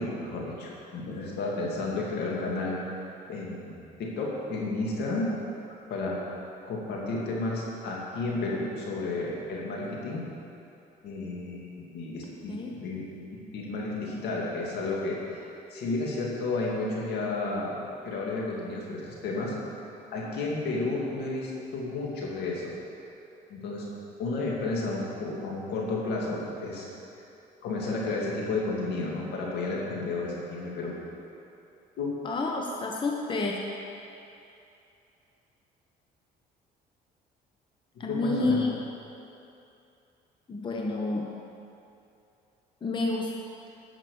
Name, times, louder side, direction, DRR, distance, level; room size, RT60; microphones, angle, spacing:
voice 1, 0.0-5.3 5.9-10.2 11.0-13.0 13.3-17.8 18.0-19.5 20.1-22.7 23.5-23.9 24.2-26.9 27.6-31.0 32.0-32.2 38.0-38.6, left 2 dB, 75° left, -3 dB, 2.4 m, -32 dB
voice 2, 32.2-33.6 38.0-38.7 40.5-41.3 42.8-43.3, left 3 dB, 30° left, 0 dB, 1.0 m, -29 dB
11.0 x 6.0 x 7.0 m, 2.8 s
cardioid pair, 110°, 17 cm